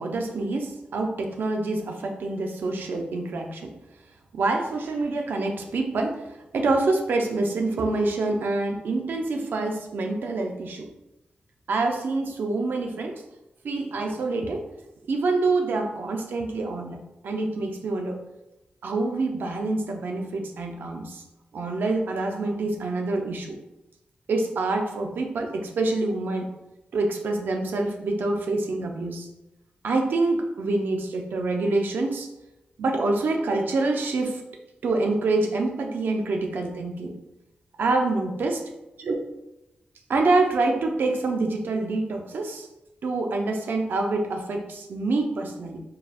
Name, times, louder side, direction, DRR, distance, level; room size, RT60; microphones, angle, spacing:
voice 1, 0.0-3.7 4.3-6.2 6.5-10.9 11.7-13.2 13.6-14.6 15.1-17.0 17.2-18.2 18.8-21.2 21.5-23.6 24.3-26.5 26.9-29.3 29.8-32.3 32.8-34.4 34.8-37.2 37.8-38.6 39.1-39.2 40.1-42.7 43.0-45.8, right 3 dB, 85° right, 3 dB, 0.4 m, -26 dB
4.5 x 3.4 x 2.4 m, 0.93 s
cardioid pair, 65°, 3 cm